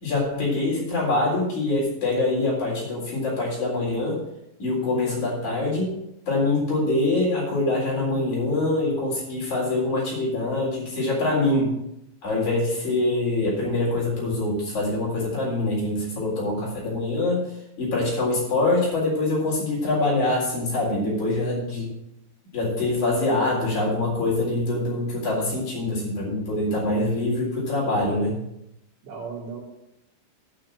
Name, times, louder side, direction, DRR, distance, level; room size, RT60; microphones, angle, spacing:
voice 1, 0.0-4.2 4.6-5.9 6.3-11.8 12.2-17.5 17.8-21.9 22.5-28.3, left 2 dB, 40° left, -5 dB, 4.9 m, -24 dB
voice 2, 21.3-21.9 29.0-29.6, right 5 dB, 65° right, -3 dB, 4.6 m, -37 dB
9.8 x 6.3 x 7.5 m, 0.82 s
omnidirectional pair, 5.5 m